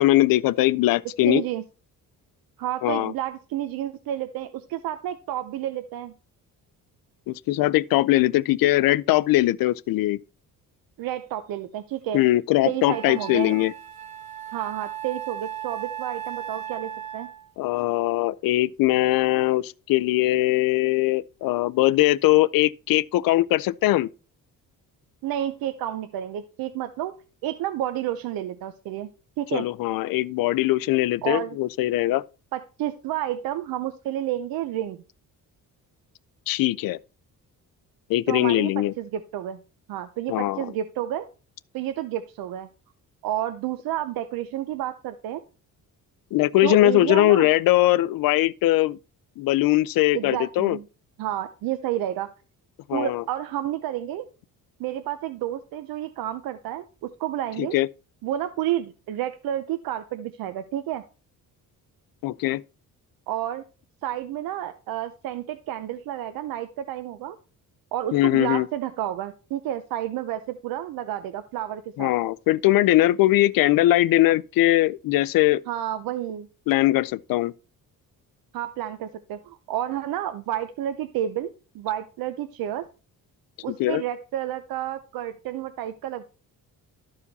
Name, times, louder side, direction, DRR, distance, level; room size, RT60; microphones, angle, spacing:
voice 1, 0.0-1.4 2.8-3.1 7.3-10.2 12.1-13.7 17.6-24.1 29.5-32.2 36.5-37.0 38.1-38.9 40.3-40.7 46.3-49.0 49.4-50.8 52.9-53.2 57.6-57.9 62.2-62.6 68.1-68.7 72.0-75.6 76.7-77.5 83.8-84.0, left 16 dB, 75° left, 0.5 m, -21 dB
voice 2, 1.2-1.6 2.6-6.1 11.0-12.3 12.7-13.5 14.5-17.3 25.2-29.1 29.4-29.7 31.2-31.6 32.5-35.0 38.3-39.6 39.9-41.3 41.7-42.7 43.2-45.4 46.6-47.5 50.1-50.8 51.2-52.3 52.9-54.3 54.8-57.8 58.2-61.0 63.3-63.6 64.0-67.4 67.9-72.1 75.7-76.5 78.5-82.9 83.6-86.2, right 12 dB, 85° right, 0.7 m, -30 dB
Wind instrument woodwind instrument, 12.2-12.3 12.9-17.5, right 11 dB, 55° right, 1.0 m, -36 dB
12.5 x 4.9 x 4.1 m
cardioid pair, 170°, 35 cm